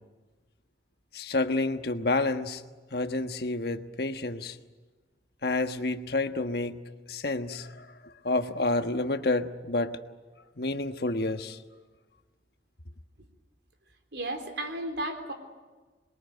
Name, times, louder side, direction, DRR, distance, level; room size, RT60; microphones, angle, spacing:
voice 1, 1.1-2.6 2.9-4.6 5.4-6.8 7.1-10.0 10.6-11.6, left 2 dB, 60° left, 8 dB, 1.3 m, -29 dB
voice 2, 14.1-15.3, right 1 dB, 75° right, 5 dB, 4.0 m, -33 dB
27.0 x 22.0 x 9.3 m, 1.3 s
head